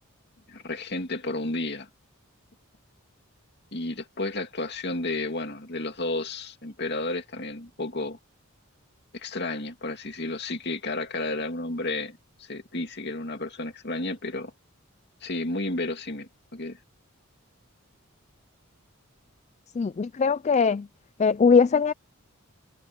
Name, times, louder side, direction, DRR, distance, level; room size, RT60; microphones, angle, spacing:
voice 1, 0.5-1.9 3.7-8.2 9.1-14.5 15.2-16.8, left 2 dB, 50° left, 2.5 m, -32 dB
voice 2, 19.8-20.9 21.2-21.9, left 5 dB, 30° left, 0.3 m, -21 dB
head